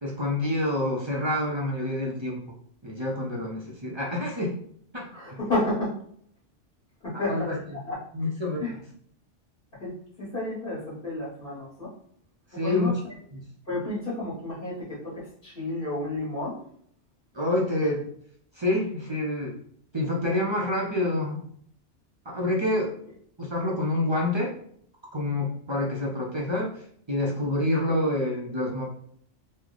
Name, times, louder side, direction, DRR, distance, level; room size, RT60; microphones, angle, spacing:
voice 1, 0.0-2.4 2.8-4.5 4.9-5.4 7.3-7.8 8.1-8.6 12.5-13.0 13.3-13.4 17.3-18.1 18.6-19.5 19.9-21.4 22.3-22.9 23.4-24.5 25.1-26.7 27.1-28.9, left 1 dB, 35° right, -3 dB, 0.5 m, -27 dB
voice 2, 5.1-5.9 7.0-7.5 7.9-8.0 8.6-8.8 9.7-11.9 12.5-12.9 13.7-16.6, left 2 dB, 45° left, -9 dB, 1.4 m, -31 dB
3.1 x 2.1 x 3.8 m, 0.63 s
omnidirectional pair, 1.2 m